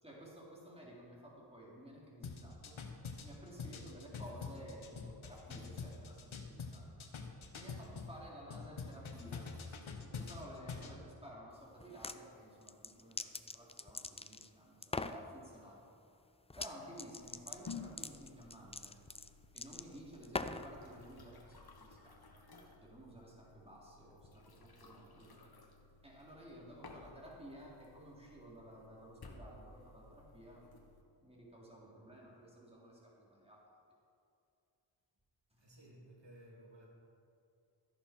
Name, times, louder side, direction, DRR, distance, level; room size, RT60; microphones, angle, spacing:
voice 1, 0.0-2.8 3.2-7.1 7.5-9.5 10.0-15.8 16.6-19.0 19.5-22.4 22.8-25.4 26.0-30.6 31.2-33.6 35.5-35.6, equal, 10° right, -4 dB, 3.6 m, -54 dB
sound 1, 2.2-8.1 8.5-11.0, left 5 dB, 70° left, 1.4 m, -45 dB
sound 2, 11.8-12.2 12.7-14.5 14.8-15.2 16.5-16.7 17.0-20.7, left 3 dB, 15° left, 0.4 m, -42 dB
sound 3, 17.2-31.0, left 4 dB, 50° left, 1.5 m, -56 dB
voice 2, 35.6-36.9, right 1 dB, 60° right, -3 dB, 3.1 m, -58 dB
14.0 x 10.5 x 4.6 m, 2.6 s
cardioid pair, 60°, 50 cm